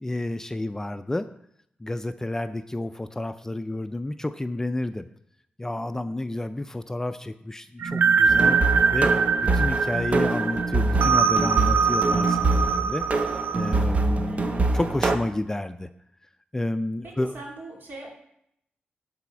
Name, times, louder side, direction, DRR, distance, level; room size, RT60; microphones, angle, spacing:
voice 1, 0.0-1.3 1.8-5.1 5.6-8.6 8.9-9.1 9.4-13.0 13.5-15.9 16.5-17.3, left 1 dB, 15° left, 10 dB, 0.4 m, -30 dB
sound 1, 7.8-13.8, right 5 dB, 85° right, 0.5 m, -23 dB
sound 2, 8.3-15.2, right 2 dB, 40° right, 0.8 m, -25 dB
voice 2, 14.3-14.7 17.3-18.1, right 2 dB, 65° right, -2 dB, 3.1 m, -41 dB
11.5 x 4.2 x 6.0 m, 0.74 s
wide cardioid pair, 125°, 3 cm